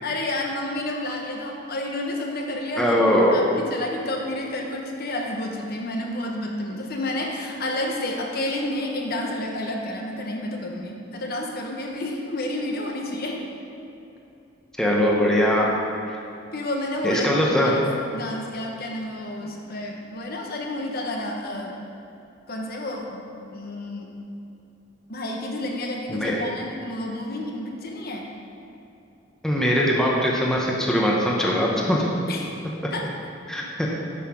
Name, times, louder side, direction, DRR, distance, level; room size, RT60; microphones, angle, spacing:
voice 1, 0.0-3.0 3.3-13.4 16.5-17.8 18.1-21.8 22.5-23.3 23.5-24.1 25.1-28.3 32.3-32.5 32.9-33.0, left 1 dB, 50° left, 1 dB, 1.1 m, -30 dB
voice 2, 2.8-3.5 14.8-15.7 17.0-17.7 26.1-26.4 29.4-32.1 33.5-33.9, equal, 5° left, -4 dB, 0.9 m, -21 dB
8.4 x 5.7 x 5.9 m, 2.8 s
head